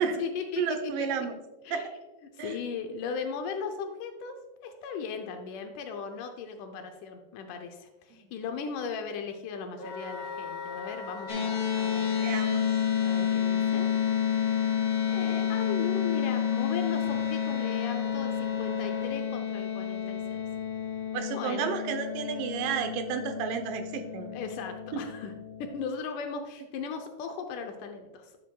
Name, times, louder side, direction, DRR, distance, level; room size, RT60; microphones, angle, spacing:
voice 1, 0.0-1.1 1.6-1.9 2.3-4.4 4.6-12.1 13.0-13.9 15.1-20.4 21.3-21.7 24.3-25.3 25.6-28.4, left 6 dB, 80° left, 6 dB, 2.0 m, -37 dB
voice 2, 0.6-1.4 1.7-1.8 2.4-2.6 8.1-8.3 12.2-12.7 21.1-24.3, right 7 dB, 80° right, 6 dB, 2.4 m, -31 dB
Wind instrument woodwind instrument, 9.8-19.1, left 2 dB, 60° left, 1.9 m, -40 dB
sound 1, 11.3-25.7, left 9 dB, 40° left, 1.3 m, -30 dB
11.0 x 6.9 x 2.3 m, 1.1 s
omnidirectional pair, 3.9 m